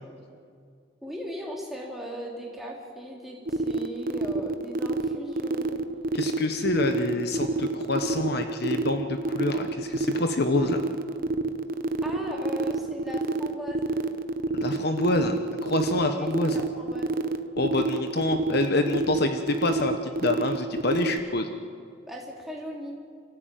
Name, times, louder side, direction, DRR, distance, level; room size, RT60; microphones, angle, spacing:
voice 1, 1.0-5.8 12.0-13.9 16.1-17.1 22.0-23.0, equal, ahead, -3 dB, 3.5 m, -38 dB
sound 1, 3.5-21.2, right 3 dB, 45° right, 0.9 m, -27 dB
voice 2, 6.1-10.8 14.5-16.6 17.6-21.5, left 2 dB, 50° left, 7 dB, 1.1 m, -27 dB
27.5 x 14.5 x 9.2 m, 2.3 s
head